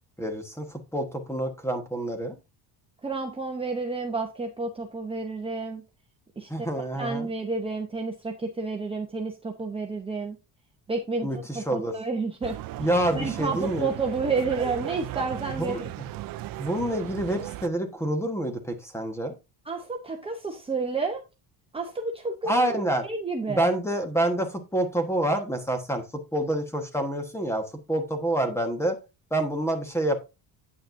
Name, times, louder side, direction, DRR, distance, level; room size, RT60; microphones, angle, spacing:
voice 1, 0.2-2.4 6.5-7.3 11.2-11.9 12.8-13.9 15.5-16.1 16.6-19.3 22.5-23.0 23.5-26.0 26.3-29.0 29.3-30.2, right 1 dB, 5° left, 6 dB, 1.3 m, -27 dB
voice 2, 3.0-5.8 6.4-6.7 7.0-10.4 10.9-12.6 13.1-15.9 19.6-21.2 21.7-23.7, right 4 dB, 15° right, 1 dB, 0.8 m, -30 dB
sound 1, 12.4-17.7, right 16 dB, 55° right, 0.5 m, -36 dB
8.8 x 8.8 x 2.6 m, 0.26 s
cardioid pair, 160°, 41 cm